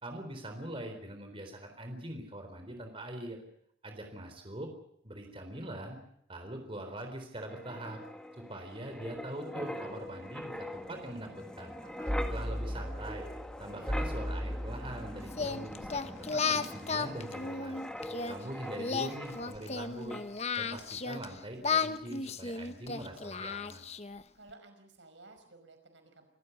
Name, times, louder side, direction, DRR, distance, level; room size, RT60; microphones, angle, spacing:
voice 1, 0.0-3.4 3.8-4.7 5.0-6.0 6.3-8.0 8.4-11.8 12.3-13.3 13.6-17.8 18.3-20.2 20.6-23.8, right 1 dB, 30° right, 5 dB, 4.0 m, -43 dB
Wind, 7.4-19.8 20.1-20.3, equal, 5° left, 1.9 m, -39 dB
voice 2, 11.8-12.3 18.1-18.7 24.3-26.3, right 2 dB, 85° right, 6 dB, 5.4 m, -55 dB
Singing, 15.3-18.3 18.8-21.3 21.6-24.2, left 5 dB, 35° left, 1.0 m, -34 dB
28.0 x 14.5 x 8.4 m, 0.71 s
head